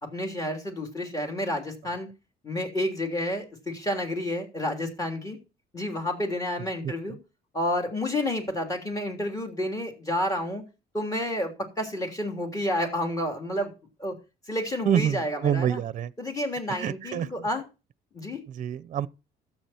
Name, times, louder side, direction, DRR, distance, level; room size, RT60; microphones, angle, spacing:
voice 1, 0.1-2.1 2.4-5.4 5.7-7.2 7.5-10.6 10.9-13.7 14.0-14.2 14.5-15.8 16.2-17.6 18.1-18.4, left 1 dB, 20° left, 3.3 m, -30 dB
voice 2, 6.8-7.2 14.8-16.1 16.7-17.5 18.5-19.1, right 9 dB, 45° right, 0.7 m, -27 dB
12.5 x 7.8 x 4.3 m
cardioid pair, 110°, 17 cm